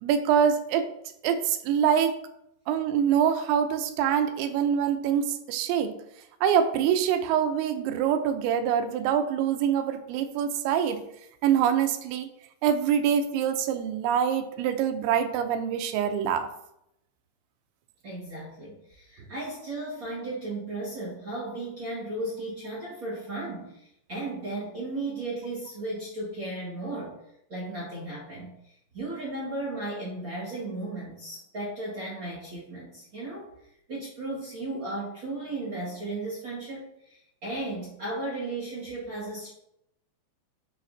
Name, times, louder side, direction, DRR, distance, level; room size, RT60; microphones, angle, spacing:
voice 1, 0.0-0.9 1.2-2.1 2.7-6.0 6.4-11.0 11.4-12.3 12.6-16.5, right 8 dB, 90° right, 8 dB, 3.0 m, -25 dB
voice 2, 18.0-27.2 27.5-33.5 33.9-39.5, right 2 dB, 45° right, -6 dB, 1.6 m, -35 dB
10.5 x 5.8 x 2.7 m, 0.80 s
omnidirectional pair, 5.1 m